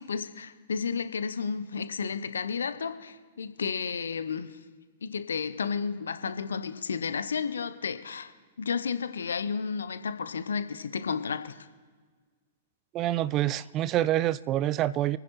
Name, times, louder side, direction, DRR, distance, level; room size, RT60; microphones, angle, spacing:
voice 1, 0.0-4.6 5.0-8.3 8.6-11.6, left 6 dB, 70° left, 0.8 m, -32 dB
voice 2, 12.9-15.2, right 13 dB, 30° right, 0.3 m, -26 dB
27.0 x 10.0 x 3.2 m
figure-of-eight pair, 105°, 0 cm